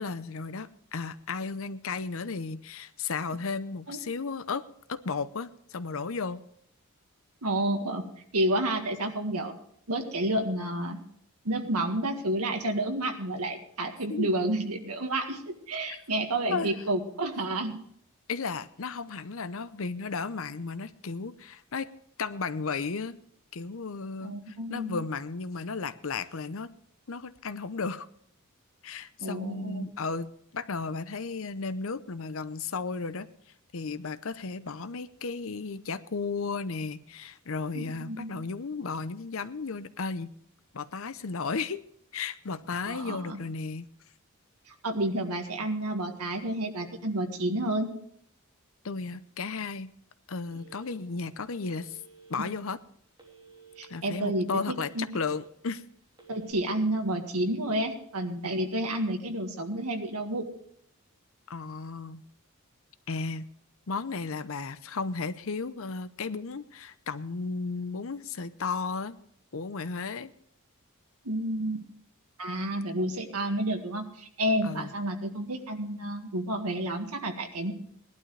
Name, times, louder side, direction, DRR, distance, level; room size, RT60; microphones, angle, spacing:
voice 1, 0.0-4.6 4.9-6.4 14.1-14.3 15.9-16.0 16.5-16.7 18.3-21.9 22.2-23.2 23.5-26.7 27.1-28.1 28.8-33.3 33.7-40.3 40.7-41.8 42.1-43.9 48.8-49.9 50.3-52.0 52.3-52.8 53.9-55.8 61.5-62.2 63.1-63.5 63.9-69.2 69.5-70.3 74.6-74.9, left 4 dB, 60° left, 13 dB, 0.7 m, -34 dB
voice 2, 7.4-8.0 8.3-9.5 9.9-11.0 11.4-17.8 24.2-25.0 29.2-29.9 37.7-38.3 42.9-43.4 44.8-47.9 52.4-52.5 53.8-55.1 56.3-60.5 71.2-71.8 72.4-77.7, right 1 dB, 85° right, 5 dB, 1.9 m, -30 dB
Telephone, 50.5-51.2 51.7-52.5 53.2-53.9 54.4-55.4 56.1-56.5, right 5 dB, 20° right, 3.1 m, -54 dB
18.5 x 12.0 x 3.3 m, 0.66 s
head